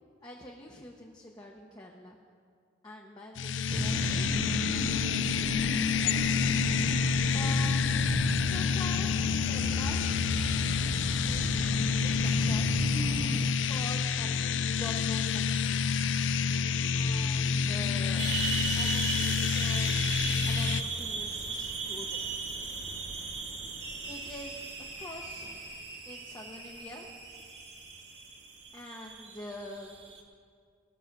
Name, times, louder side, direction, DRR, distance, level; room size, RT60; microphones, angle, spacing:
voice 1, 0.2-2.2 2.8-5.8 6.0-6.3 7.3-10.2 10.9-11.5 12.0-15.8 16.9-18.3 18.7-20.2 20.5-22.3 23.0-23.4 24.1-25.8 26.1-27.1 28.7-30.0, left 1 dB, 20° left, -2 dB, 0.9 m, -46 dB
sound 1, 3.4-20.8, left 6 dB, 85° left, 0.4 m, -28 dB
sound 2, 3.7-13.5, right 1 dB, 25° right, 0.5 m, -35 dB
sound 3, 18.2-30.2, right 5 dB, 70° right, 1.8 m, -37 dB
18.5 x 6.5 x 6.6 m, 2.1 s
head